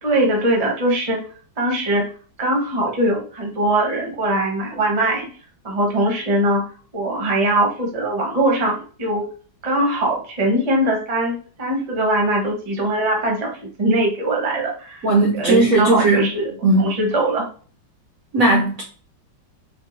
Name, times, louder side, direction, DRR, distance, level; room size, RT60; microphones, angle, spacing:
voice 1, 0.0-1.2 1.6-2.1 2.4-5.3 5.6-6.6 6.9-9.2 9.6-17.5, right 1 dB, 25° right, 0 dB, 0.8 m, -21 dB
voice 2, 15.0-16.2 16.6-16.9 18.3-18.8, right 2 dB, 60° right, -1 dB, 1.0 m, -16 dB
4.6 x 2.3 x 3.9 m, 0.41 s
omnidirectional pair, 2.1 m